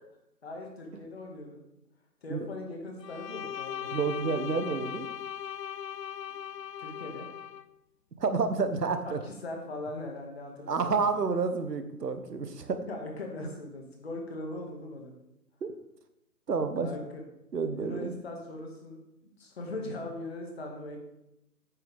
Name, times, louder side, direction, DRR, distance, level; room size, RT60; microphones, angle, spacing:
voice 1, 0.4-1.6 2.2-3.9 6.8-7.3 9.0-10.9 12.9-15.2 16.8-17.2 17.7-21.0, left 2 dB, 40° left, 1 dB, 2.1 m, -40 dB
Bowed string instrument, 3.0-7.7, left 9 dB, 90° left, 0.7 m, -39 dB
voice 2, 3.9-5.1 8.2-9.2 10.7-12.9 15.6-15.7 16.5-16.9 17.5-18.1, right 4 dB, 75° right, 9 dB, 1.3 m, -29 dB
9.8 x 8.9 x 3.6 m, 0.86 s
hypercardioid pair, 165°, 48 cm